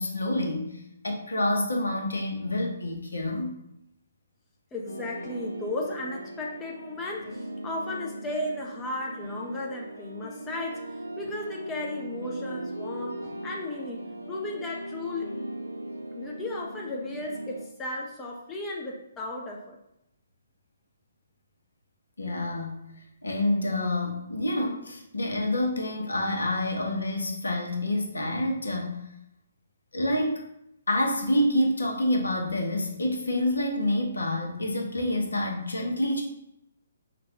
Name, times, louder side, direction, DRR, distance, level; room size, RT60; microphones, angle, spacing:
voice 1, 0.0-3.6 22.2-22.9 23.2-29.1 29.9-30.4 30.9-36.2, left 1 dB, 70° left, 2 dB, 0.8 m, -27 dB
voice 2, 4.7-15.3 16.1-19.8, left 2 dB, 15° left, -1 dB, 0.5 m, -35 dB
sound 1, 4.9-17.7, right 1 dB, 85° right, 0.7 m, -39 dB
4.9 x 2.2 x 2.8 m, 0.81 s
figure-of-eight pair, 135°, 0 cm